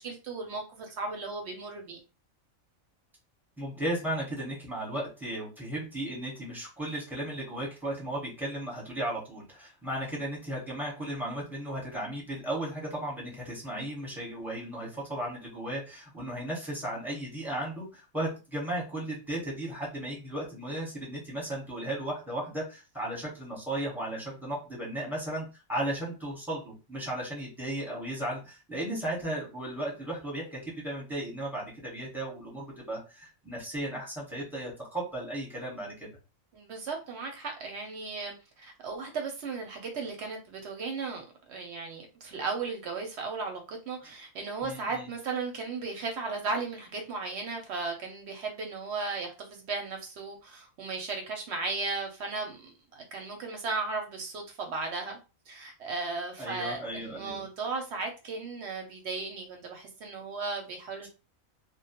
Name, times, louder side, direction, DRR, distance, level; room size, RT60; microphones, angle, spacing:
voice 1, 0.0-2.0 36.5-55.2 55.5-61.1, right 4 dB, 65° right, 0.7 m, -36 dB
voice 2, 3.6-36.1 44.6-45.1 56.4-57.4, right 1 dB, ahead, 0.8 m, -35 dB
2.2 x 2.1 x 2.8 m
omnidirectional pair, 1.4 m